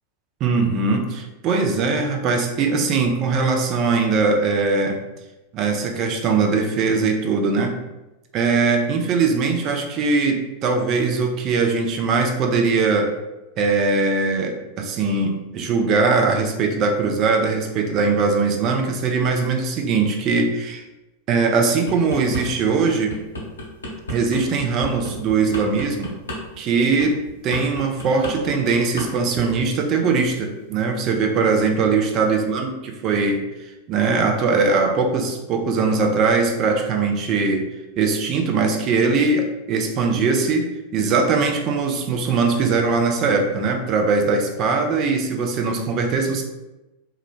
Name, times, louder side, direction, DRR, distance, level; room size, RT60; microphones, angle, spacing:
voice 1, 0.4-5.0 5.5-7.8 8.3-13.1 13.6-20.8 21.3-23.2 24.1-26.1 26.6-33.4 33.9-37.7 38.0-46.4, right 4 dB, 35° right, 3 dB, 0.4 m, -21 dB
sound 1, 21.6-22.4 22.9-29.1 29.3-29.6, equal, 75° left, 0.6 m, -32 dB
2.4 x 2.0 x 2.9 m, 1.0 s
figure-of-eight pair, 90°, 0 cm